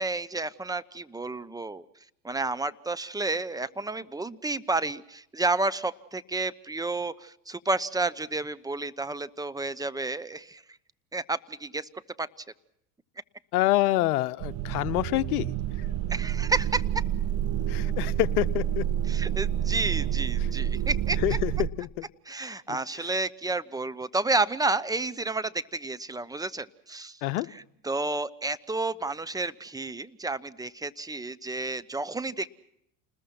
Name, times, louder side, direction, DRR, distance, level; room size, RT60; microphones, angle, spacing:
voice 1, 0.0-1.8 2.2-10.6 11.1-11.9 12.2-12.3 16.1-16.8 19.1-21.4 22.2-27.2 27.5-32.6, right 3 dB, 10° right, 13 dB, 1.0 m, -31 dB
voice 2, 13.5-15.5 17.7-18.8 21.2-21.5 21.8-22.0 27.2-27.5, left 17 dB, 70° left, 13 dB, 0.9 m, -26 dB
sound 1, 14.4-21.7, right 10 dB, 50° right, 1.7 m, -28 dB
29.0 x 20.5 x 6.0 m, 0.77 s
hypercardioid pair, 85°, 46 cm